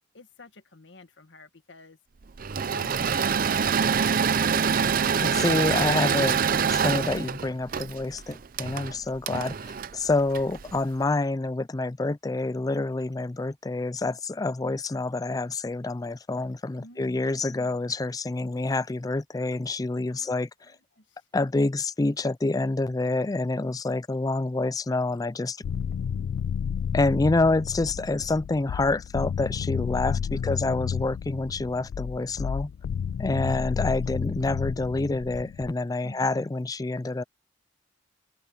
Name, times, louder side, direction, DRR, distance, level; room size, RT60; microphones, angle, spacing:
voice 1, 0.1-2.0 2.6-4.7 5.3-5.8 16.8-17.8 18.4-18.9 20.1-21.3 30.1-30.8 33.3-33.8 36.0-36.5, left 2 dB, 70° left, 1.7 m, -50 dB
Engine / Mechanisms, 2.4-10.8, right 6 dB, 50° right, 0.6 m, -25 dB
voice 2, 5.2-6.4 6.7-20.5 21.3-25.6 26.9-32.7 33.2-37.2, left 2 dB, 20° left, 0.4 m, -27 dB
sound 1, 25.6-35.7, left 7 dB, 90° left, 0.3 m, -31 dB
open air
head